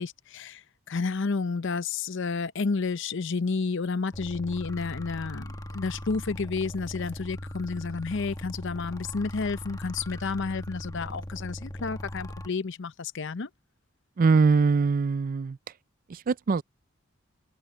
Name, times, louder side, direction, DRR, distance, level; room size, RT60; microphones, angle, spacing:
voice 1, 0.0-13.5, left 4 dB, 65° left, 0.7 m, -31 dB
sound 1, 4.1-12.5, equal, 20° left, 1.3 m, -39 dB
voice 2, 14.2-15.6 16.1-16.6, right 4 dB, 45° right, 0.4 m, -22 dB
open air
head